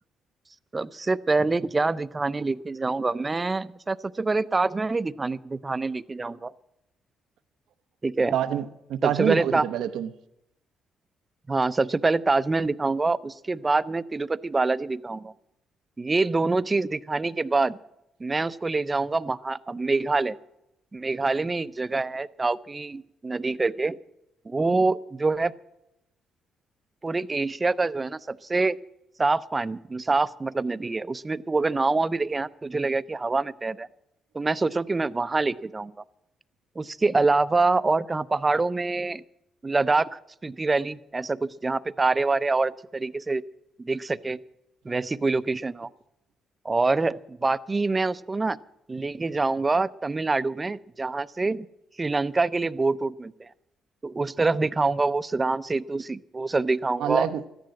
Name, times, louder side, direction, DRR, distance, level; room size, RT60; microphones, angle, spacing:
voice 1, 0.7-6.5 8.0-8.3 9.0-9.6 11.5-15.3 16.0-17.8 18.2-20.3 20.9-24.0 24.5-25.5 27.0-28.8 29.2-33.9 34.3-35.9 36.8-39.2 39.6-43.4 43.8-44.4 44.8-45.9 46.6-48.6 48.9-51.7 52.0-53.5 54.0-57.3, right 3 dB, 25° right, 15 dB, 0.6 m, -25 dB
voice 2, 8.3-8.6 8.9-10.1 57.0-57.5, right 10 dB, 80° right, 10 dB, 0.7 m, -26 dB
14.0 x 10.5 x 7.5 m, 0.84 s
cardioid pair, 90°, 0 cm